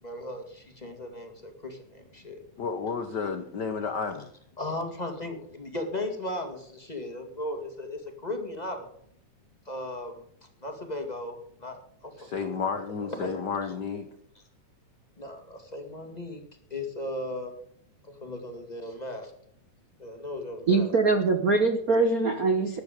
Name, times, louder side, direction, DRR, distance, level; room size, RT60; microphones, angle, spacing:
voice 1, 0.0-2.4 4.6-8.9 9.6-10.2 10.6-12.7 13.0-13.7 15.2-16.4 16.7-17.5 18.0-19.3 20.0-20.9, left 1 dB, 15° left, 4 dB, 1.7 m, -37 dB
voice 2, 2.6-4.3 12.2-14.0, left 5 dB, 75° left, 7 dB, 0.9 m, -31 dB
voice 3, 20.7-22.8, right 3 dB, 70° right, 6 dB, 0.8 m, -23 dB
14.0 x 10.5 x 5.1 m, 0.67 s
omnidirectional pair, 3.5 m